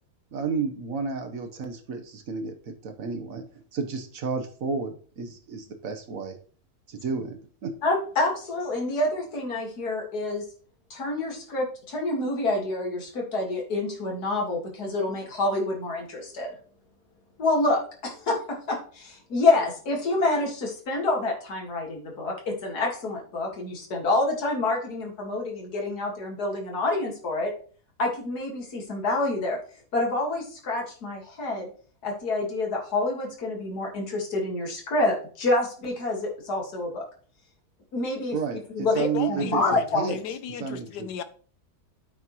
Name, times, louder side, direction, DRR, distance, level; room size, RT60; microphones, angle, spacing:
voice 1, 0.3-6.4 6.9-7.7 38.3-40.2 40.6-40.9, right 5 dB, 60° right, 1.5 m, -31 dB
voice 2, 7.8-10.4 10.9-16.5 17.4-27.5 28.0-29.6 29.9-31.7 32.0-37.0 37.9-38.4 38.7-38.9 39.3-40.1, left 2 dB, 70° left, 2.5 m, -27 dB
voice 3, 38.9-41.2, left 7 dB, 90° left, 1.4 m, -34 dB
9.1 x 7.3 x 3.1 m
omnidirectional pair, 1.7 m